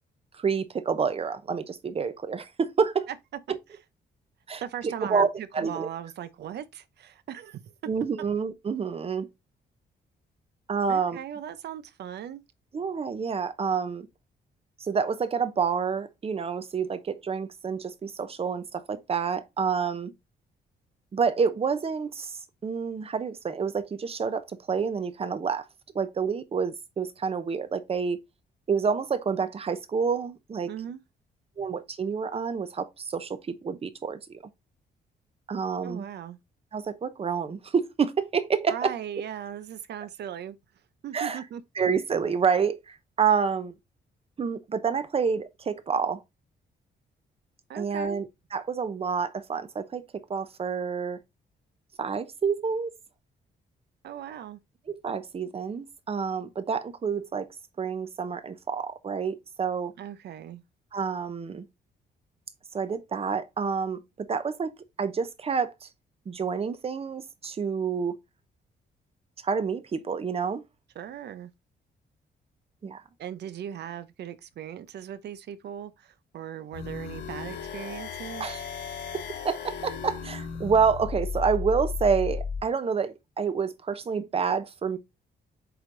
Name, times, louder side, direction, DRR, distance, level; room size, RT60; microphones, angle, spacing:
voice 1, 0.3-3.1 3.5-3.6 4.5-5.3 5.5-5.9 7.9-9.3 10.7-11.2 12.7-14.1 14.8-20.1 21.1-25.7 25.9-28.2 28.7-30.7 31.6-34.4 35.5-36.0 36.7-38.9 41.1-41.4 41.8-43.8 44.4-46.2 47.8-51.2 52.0-52.9 54.9-57.5 57.8-59.9 60.9-61.7 62.7-64.7 65.0-65.9 66.3-68.2 69.4-70.6 72.8-73.0 78.4-78.6 79.1-85.0, right 6 dB, 35° right, 0.8 m, -28 dB
voice 2, 4.6-7.7 10.9-12.4 30.7-31.0 35.8-36.4 38.7-40.6 41.0-41.6 47.7-48.2 54.0-54.6 60.0-60.6 70.9-71.5 73.2-78.5, right 10 dB, 70° right, 0.7 m, -38 dB
sound 1, 76.7-82.6, left 6 dB, 85° left, 2.4 m, -35 dB
7.9 x 3.3 x 3.8 m
cardioid pair, 130°, 18 cm